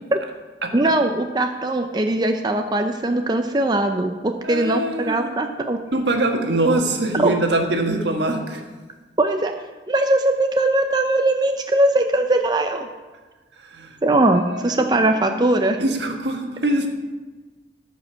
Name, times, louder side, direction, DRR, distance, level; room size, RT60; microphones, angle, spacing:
voice 1, 0.7-5.8 7.2-7.3 9.2-9.5 9.9-12.9 14.0-15.8, right 2 dB, 25° right, 5 dB, 0.5 m, -20 dB
voice 2, 4.4-5.3 5.9-8.6 13.7-14.0 14.3-16.9, right 2 dB, 80° right, 3 dB, 1.4 m, -23 dB
13.5 x 5.2 x 6.1 m, 1.3 s
head